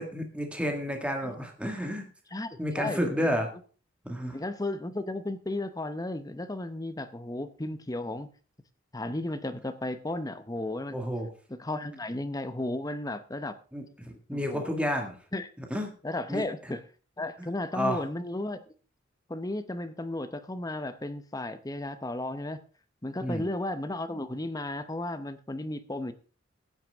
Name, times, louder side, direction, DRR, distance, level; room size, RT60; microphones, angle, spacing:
voice 1, 0.0-2.1 2.6-3.5 4.0-4.4 10.9-11.3 13.7-15.2 15.6-15.9 16.3-16.4 17.4-18.0 23.2-23.5, equal, 5° right, 3 dB, 1.8 m, -31 dB
voice 2, 2.3-3.4 4.3-8.3 8.9-11.0 11.6-13.6 14.3-14.8 15.3-15.5 16.0-16.8 17.2-18.6 19.3-22.6 23.0-26.1, left 2 dB, 20° left, 11 dB, 0.7 m, -34 dB
15.0 x 9.1 x 3.5 m, 0.38 s
head